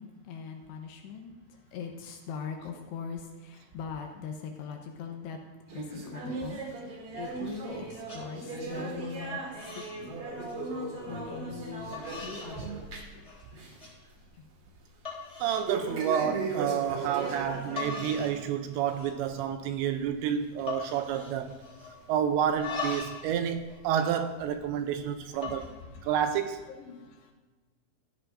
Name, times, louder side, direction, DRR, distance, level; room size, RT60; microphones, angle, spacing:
voice 1, 0.0-5.4 5.7-10.1 11.1-13.3 14.3-14.5 25.3-26.2 26.6-27.3, left 6 dB, 75° left, 3 dB, 2.8 m, -42 dB
sound 1, 5.7-13.2 13.5-13.9 14.2-14.3 15.7-18.3 18.7-18.9 19.6-19.7 20.6-20.7 21.5-21.6, right 3 dB, 50° right, 1.8 m, -37 dB
sound 2, 7.4-7.7 8.0-8.2 8.7-9.0 9.3-10.0 10.3-10.6 11.3-11.4 11.9-12.5 12.9-13.4 13.8-13.9 14.5-14.6 15.0-15.7 16.1-16.4 17.4-17.5 17.8-18.4 18.7-19.3 19.6-19.7 19.9-20.2 20.7-22.0 22.4-23.3 23.5-24.8 25.3-25.7, left 4 dB, 10° left, 2.7 m, -40 dB
voice 2, 15.4-21.5 22.1-25.6 26.0-26.7, right 9 dB, 80° right, 8 dB, 2.7 m, -29 dB
15.5 x 13.5 x 2.6 m, 1.3 s
omnidirectional pair, 5.4 m